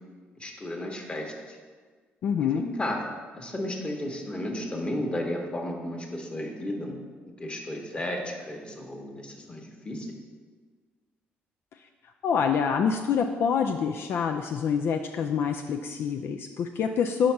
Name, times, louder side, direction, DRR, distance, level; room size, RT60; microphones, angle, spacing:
voice 1, 0.4-1.6 2.4-3.1 3.3-7.0 7.4-10.2, left 1 dB, 25° left, 1 dB, 1.2 m, -33 dB
voice 2, 2.2-2.6 12.2-17.3, left 7 dB, 65° left, 4 dB, 0.3 m, -26 dB
5.0 x 4.1 x 5.8 m, 1.5 s
supercardioid pair, 75°, 4 cm